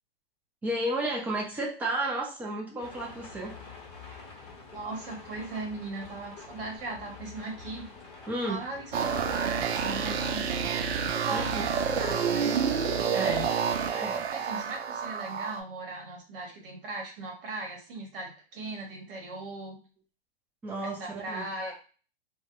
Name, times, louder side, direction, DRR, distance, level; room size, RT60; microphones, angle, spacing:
voice 1, 0.6-3.6 8.3-8.6 11.3-11.7 13.1-13.5 13.9-14.3 20.6-21.0 21.3-21.5, right 1 dB, 5° right, -1 dB, 0.3 m, -32 dB
sound 1, 2.8-9.9, left 4 dB, 20° left, 0.8 m, -47 dB
voice 2, 4.7-7.9 8.5-10.5 11.1-11.6 11.9-12.5 13.9-19.8 20.8-21.7, right 2 dB, 60° right, 1 dB, 1.0 m, -38 dB
sound 2, 8.9-15.6, right 6 dB, 80° right, 0.5 m, -29 dB
2.1 x 2.0 x 2.9 m, 0.38 s
hypercardioid pair, 130°, 31 cm